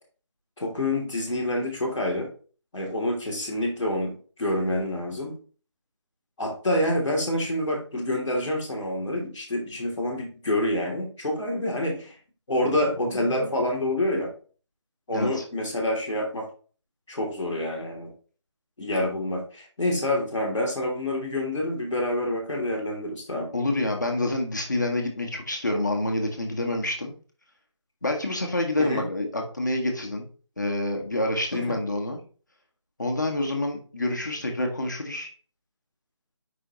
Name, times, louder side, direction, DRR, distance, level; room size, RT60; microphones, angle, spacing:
voice 1, 0.6-2.3 2.7-5.3 6.4-12.1 12.5-14.3 15.1-16.5 17.1-18.1 18.8-23.5 28.8-29.0, left 1 dB, 5° left, -15 dB, 0.9 m, -27 dB
voice 2, 15.1-15.4 23.5-27.1 28.0-30.3 30.6-32.2 33.0-35.3, left 1 dB, 40° left, 2 dB, 1.1 m, -27 dB
6.1 x 5.2 x 3.0 m, 0.39 s
figure-of-eight pair, 180°, 15 cm